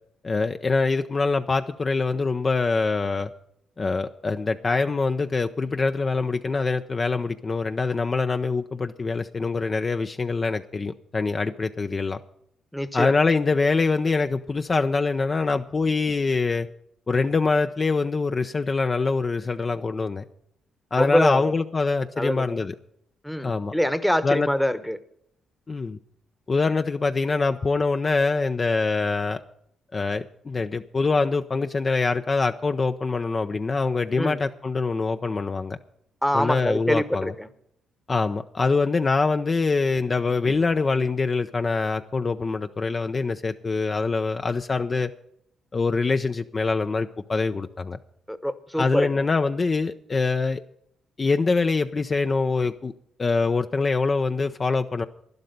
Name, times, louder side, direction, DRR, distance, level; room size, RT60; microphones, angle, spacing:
voice 1, 0.2-3.3 3.8-12.2 12.9-16.7 17.1-20.2 20.9-22.7 23.4-23.7 24.2-24.5 25.7-26.0 26.5-29.4 29.9-35.8 36.3-37.3 38.1-45.1 45.7-48.0 48.8-50.6 51.2-52.9 53.2-55.1, left 4 dB, 30° left, 7 dB, 0.6 m, -24 dB
voice 2, 12.7-13.1 21.0-21.5 22.2-22.6 23.2-25.0 34.2-34.4 36.2-37.5 48.3-49.3, equal, 5° left, 12 dB, 1.0 m, -25 dB
12.0 x 11.5 x 5.3 m, 0.71 s
cardioid pair, 90°, 0 cm